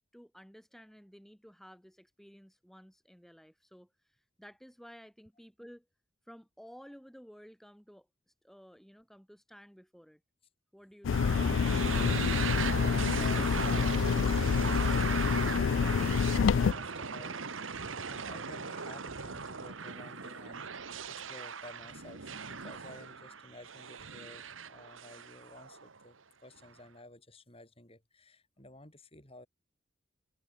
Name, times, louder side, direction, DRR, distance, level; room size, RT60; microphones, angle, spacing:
voice 1, 0.0-5.9 6.3-10.2 10.7-11.3, equal, ahead, 4.6 m, -54 dB
sound 1, 11.0-16.7, left 6 dB, 75° left, 0.4 m, -27 dB
sound 2, 11.1-26.0, right 5 dB, 85° right, 1.6 m, -38 dB
sound 3, 15.7-21.5, equal, 25° right, 8.0 m, -59 dB
voice 2, 16.5-29.5, left 2 dB, 30° left, 6.9 m, -53 dB
head